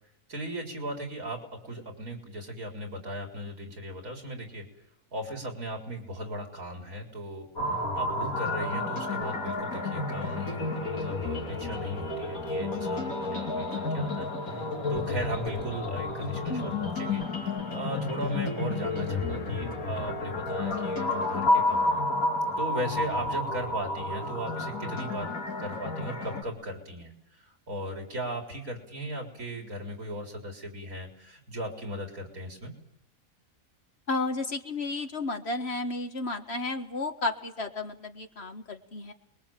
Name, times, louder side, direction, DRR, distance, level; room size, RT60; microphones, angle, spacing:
voice 1, 0.3-4.6 5.1-22.0 22.6-25.3 25.6-32.7, right 1 dB, 80° right, 2 dB, 4.4 m, -37 dB
sound 1, 7.6-26.4, left 2 dB, 75° left, 3.1 m, -31 dB
voice 2, 34.1-39.1, left 3 dB, 50° left, 6 dB, 1.8 m, -32 dB
28.0 x 22.0 x 7.5 m, 0.79 s
omnidirectional pair, 1.5 m